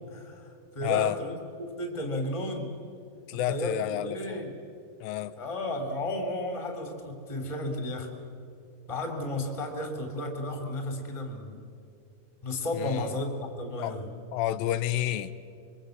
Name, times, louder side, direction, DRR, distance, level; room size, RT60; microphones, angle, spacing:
voice 1, 0.1-2.8 3.3-4.5 5.4-8.1 8.9-11.6 12.4-14.1, left 1 dB, 10° left, 4 dB, 2.3 m, -33 dB
voice 2, 0.8-1.2 3.3-4.4 5.0-5.3 12.7-13.1 13.8-14.0 14.3-15.3, left 13 dB, 75° left, 13 dB, 2.4 m, -29 dB
25.5 x 23.5 x 7.9 m, 2.5 s
omnidirectional pair, 4.4 m